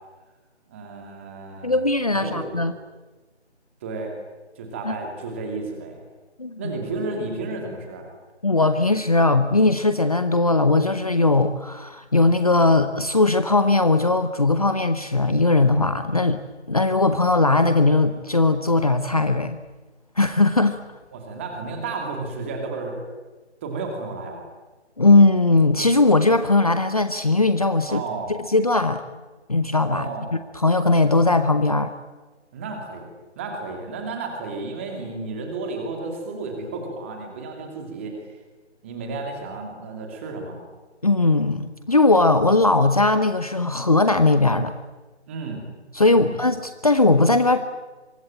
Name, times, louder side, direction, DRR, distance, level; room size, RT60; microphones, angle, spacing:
voice 1, 0.7-2.7 3.8-4.1 4.6-6.0 6.6-8.1 21.1-23.0 23.6-24.5 27.9-28.3 29.9-30.3 32.5-33.1 33.4-38.4 38.8-40.6 45.3-45.6 46.1-46.4, right 3 dB, 10° right, 3 dB, 2.5 m, -32 dB
voice 2, 1.6-2.7 4.9-5.0 6.4-6.6 8.4-16.4 16.7-19.6 20.2-20.8 25.0-28.0 28.3-29.0 29.5-30.1 30.5-31.9 41.0-44.8 45.9-47.7, left 2 dB, 30° left, 10 dB, 0.9 m, -19 dB
25.5 x 24.0 x 8.9 m, 1.2 s
figure-of-eight pair, 160°, 35 cm